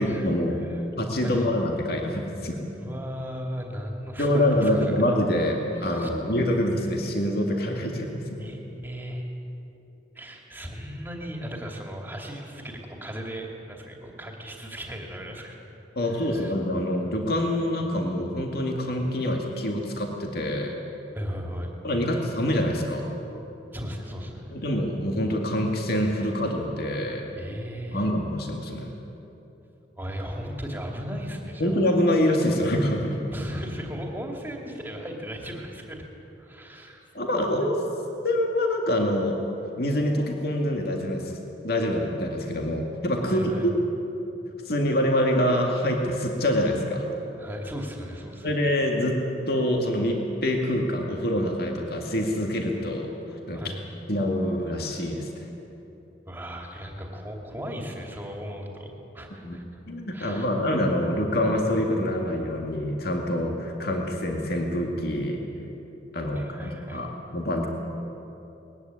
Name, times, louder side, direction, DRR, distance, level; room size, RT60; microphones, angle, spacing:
voice 1, 0.0-0.6 1.0-2.6 4.2-8.4 16.0-20.8 21.8-23.1 24.5-27.3 27.9-28.9 31.6-33.2 37.1-37.8 38.2-39.4 39.8-41.3 41.6-43.7 44.7-47.1 48.4-49.2 49.5-53.1 53.5-53.6 54.1-55.5 59.3-59.6 59.9-65.4 66.1-67.7, left 1 dB, 55° left, 1 dB, 2.2 m, -25 dB
voice 2, 2.7-4.9 5.8-6.1 8.4-9.3 10.1-15.6 16.1-16.5 21.1-21.7 23.7-24.5 27.3-28.1 30.0-31.7 33.3-36.1 36.4-37.0 43.2-43.7 47.4-48.5 53.5-53.8 56.3-59.8 60.1-60.5 66.3-67.1, equal, 10° right, 1 dB, 2.6 m, -36 dB
20.5 x 15.0 x 9.7 m, 3.0 s
head